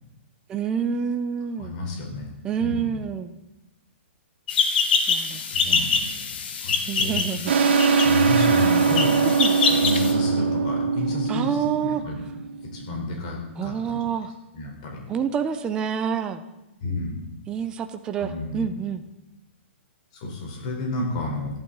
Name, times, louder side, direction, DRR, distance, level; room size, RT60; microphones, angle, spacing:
voice 1, 0.5-1.8 2.4-3.4 5.1-5.4 6.8-7.5 9.4-9.6 11.3-12.0 13.6-14.3 15.1-16.4 17.5-19.0, right 7 dB, 10° right, 7 dB, 0.6 m, -27 dB
voice 2, 1.6-2.3 2.6-3.0 5.5-7.2 8.0-9.2 9.6-12.2 12.7-14.0 14.5-15.0 16.8-17.3 18.1-18.9 20.1-21.5, left 2 dB, 35° left, 0 dB, 4.1 m, -31 dB
sound 1, 4.5-10.1, left 5 dB, 55° left, 1.9 m, -25 dB
sound 2, 7.5-12.8, right 5 dB, 60° right, 1.8 m, -21 dB
26.0 x 11.5 x 4.0 m, 0.97 s
hypercardioid pair, 170°, 7 cm